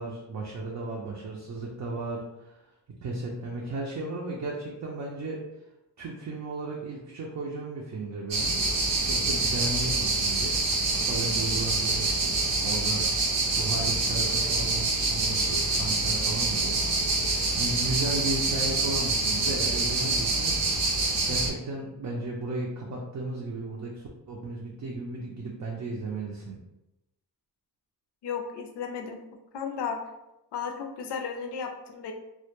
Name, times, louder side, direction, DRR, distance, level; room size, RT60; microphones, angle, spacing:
voice 1, 0.0-2.7 3.0-5.4 6.0-8.6 9.0-13.1 13.6-16.9 17.2-20.6 21.3-26.6, right 2 dB, 45° right, -2 dB, 0.4 m, -35 dB
sound 1, 8.3-21.5, right 3 dB, 90° right, 0.7 m, -26 dB
voice 2, 28.2-29.2 29.5-30.0 30.5-32.1, left 6 dB, 75° left, 4 dB, 0.5 m, -34 dB
2.1 x 2.1 x 2.9 m, 0.93 s
wide cardioid pair, 95°, 42 cm